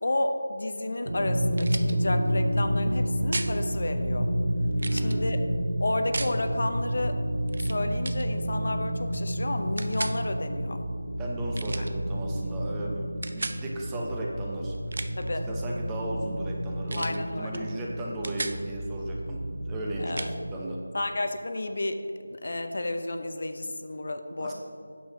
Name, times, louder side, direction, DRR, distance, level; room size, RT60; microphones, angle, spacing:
voice 1, 0.0-4.3 4.9-5.4 5.8-7.2 7.6-10.8 11.8-11.9 15.2-15.5 17.0-17.6 20.0-20.3 20.9-22.0 22.3-24.5, left 2 dB, 60° left, 7 dB, 0.7 m, -31 dB
sound 1, 1.1-20.5, equal, 80° right, 0.8 m, -30 dB
sound 2, 1.5-1.9 3.3-3.6 4.8-5.2 6.1-6.4 7.5-7.8 8.0-8.3 9.8-10.2 11.5-11.9 13.2-13.6 14.7-15.3 16.9-17.2 17.5-17.7 18.0-18.6 20.2-20.3, right 2 dB, 55° right, 0.5 m, -35 dB
voice 2, 4.8-5.3 11.2-14.7 15.3-20.8 24.4-24.5, right 1 dB, 10° right, -2 dB, 0.7 m, -36 dB
8.5 x 7.1 x 3.7 m, 2.4 s
figure-of-eight pair, 170°, 0 cm